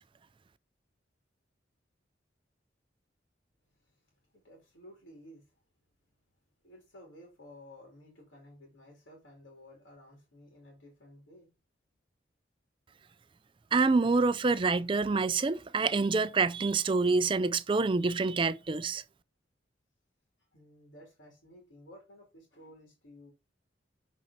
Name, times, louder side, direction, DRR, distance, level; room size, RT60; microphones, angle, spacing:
voice 1, 3.9-5.5 6.6-11.5 20.5-23.3, left 1 dB, 85° left, 2.7 m, -54 dB
voice 2, 13.7-19.0, right 4 dB, 25° right, 0.4 m, -27 dB
6.9 x 4.2 x 4.1 m
head